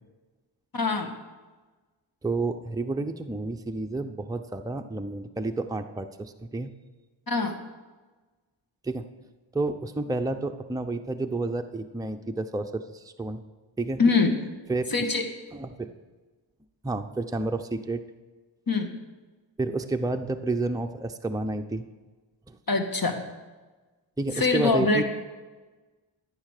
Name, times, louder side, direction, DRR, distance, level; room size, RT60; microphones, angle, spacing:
voice 1, 0.7-1.1 7.3-7.5 14.0-14.4 14.9-15.2 18.7-18.9 22.7-23.2 24.3-25.0, left 3 dB, 50° left, 5 dB, 1.9 m, -23 dB
voice 2, 2.2-6.7 8.8-9.0 9.5-13.4 13.8-14.0 14.7-14.9 15.5-15.9 16.8-18.0 19.6-21.9 22.5-22.6 24.2-25.0, right 2 dB, 10° right, 5 dB, 0.8 m, -30 dB
14.0 x 9.3 x 6.6 m, 1.3 s
wide cardioid pair, 75°, 46 cm